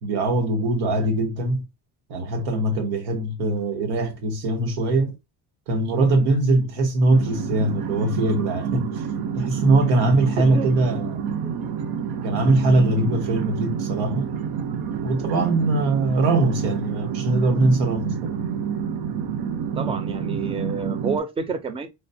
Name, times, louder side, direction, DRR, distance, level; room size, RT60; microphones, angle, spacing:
voice 1, 0.0-1.6 2.1-5.1 5.7-9.1 9.3-11.2 12.2-14.3 15.0-18.4, right 2 dB, 85° right, 1.2 m, -22 dB
sound 1, 7.1-21.2, right 7 dB, 60° right, 0.8 m, -28 dB
voice 2, 10.4-10.7 11.4-11.5 19.8-21.9, right 4 dB, 15° right, 0.4 m, -29 dB
5.0 x 2.1 x 2.6 m
cardioid pair, 150°, 44 cm